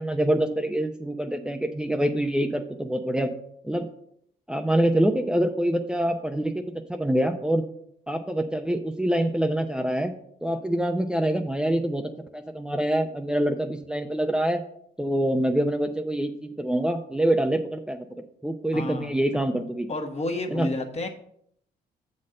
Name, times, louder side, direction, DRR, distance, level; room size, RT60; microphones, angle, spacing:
voice 1, 0.0-3.3 3.6-3.9 4.5-6.5 6.9-7.6 8.1-10.1 10.4-14.6 15.0-18.1 18.4-19.9 20.5-20.7, right 1 dB, 5° right, 4 dB, 0.7 m, -25 dB
voice 2, 18.7-19.1 19.9-21.1, left 2 dB, 40° left, 4 dB, 1.3 m, -30 dB
7.2 x 4.3 x 6.5 m, 0.69 s
supercardioid pair, 65°, 17 cm